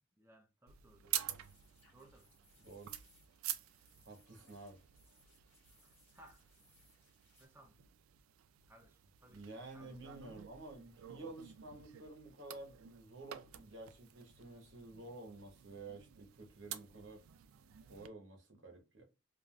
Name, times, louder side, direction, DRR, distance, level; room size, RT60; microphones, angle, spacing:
voice 1, 0.2-1.2 1.9-2.3 5.8-6.4 7.4-7.8 8.7-9.4 9.7-10.0, right 1 dB, 10° right, 0.4 m, -62 dB
sound 1, 0.7-18.1, right 12 dB, 90° right, 0.3 m, -49 dB
sound 2, 1.2-7.5, left 2 dB, 10° left, 1.7 m, -70 dB
voice 2, 2.6-3.1 4.0-4.8 9.3-17.2 17.8-19.0, right 2 dB, 60° right, 0.9 m, -51 dB
3.3 x 2.4 x 2.2 m
head